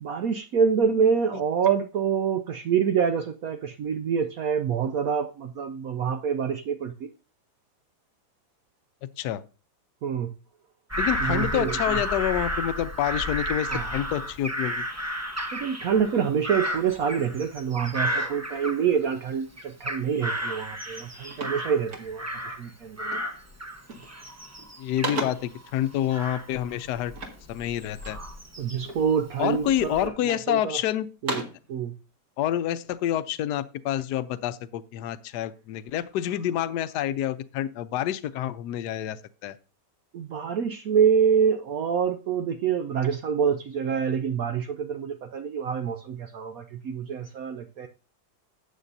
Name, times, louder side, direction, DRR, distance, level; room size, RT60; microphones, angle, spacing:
voice 1, 0.0-7.1 10.0-10.3 11.2-12.0 13.7-14.0 15.5-23.2 28.6-30.8 31.2-31.4 31.7-31.9 40.1-47.9, right 7 dB, 70° right, 0.8 m, -26 dB
Bird vocalization bird call bird song / Crow, 10.9-19.2 19.6-22.7 23.0-29.0 29.5-30.1, equal, 25° right, 0.3 m, -33 dB
voice 2, 11.0-14.8 24.8-27.1 27.5-28.2 29.4-31.1 32.4-39.2 39.4-39.5, left 11 dB, 70° left, 1.1 m, -28 dB
sound 1, 20.5-20.6 20.9-22.5 23.1-23.4 23.7-24.2 24.6-25.6 27.1-28.3 28.8-29.5 30.0-30.7 31.0-31.7, right 1 dB, 50° right, 2.3 m, -36 dB
13.0 x 8.2 x 2.7 m
omnidirectional pair, 2.1 m